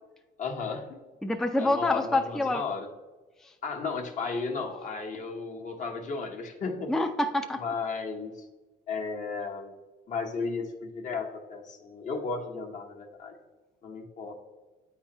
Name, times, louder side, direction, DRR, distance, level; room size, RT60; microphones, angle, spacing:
voice 1, 0.4-1.0 1.6-2.9 3.6-6.9 7.6-8.5 8.9-9.7 10.1-13.3 13.8-14.3, left 4 dB, 50° left, 3 dB, 1.1 m, -34 dB
voice 2, 1.2-2.6 6.9-7.6, left 2 dB, 5° left, 6 dB, 0.4 m, -26 dB
8.8 x 3.9 x 3.0 m, 1.2 s
cardioid pair, 110°, 17 cm